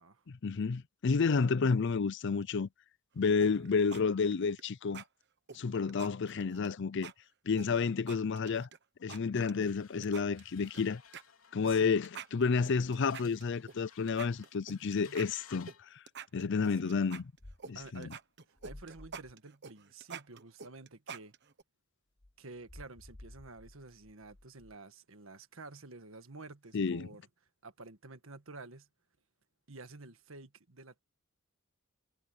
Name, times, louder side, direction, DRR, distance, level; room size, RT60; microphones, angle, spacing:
voice 1, 0.3-2.7 3.2-5.0 5.5-7.1 7.5-8.7 9.0-11.0 11.5-15.7 16.3-17.3 17.7-18.1 26.7-27.1, left 5 dB, 60° left, 0.5 m, -30 dB
sound 1, 3.4-4.0 4.3-4.6 4.9-5.1 5.5-6.7 7.0-7.1 7.6-8.8 9.1-9.7 10.0-10.8 11.1-11.2 11.6-11.8 12.0-13.8 14.1-15.8 16.1-17.7 18.0-21.6, right 6 dB, 55° right, 1.2 m, -47 dB
voice 2, 9.3-9.7 11.6-12.0 14.7-15.2 16.8-17.0 17.7-18.1 18.6-21.3 22.4-27.2 27.6-28.9 29.7-31.0, right 3 dB, 75° right, 1.6 m, -50 dB
sound 2, 9.6-15.9, left 8 dB, 85° left, 3.4 m, -58 dB
sound 3, 17.4-17.9 18.6-19.3 22.2-24.7, left 1 dB, 20° left, 0.7 m, -54 dB
head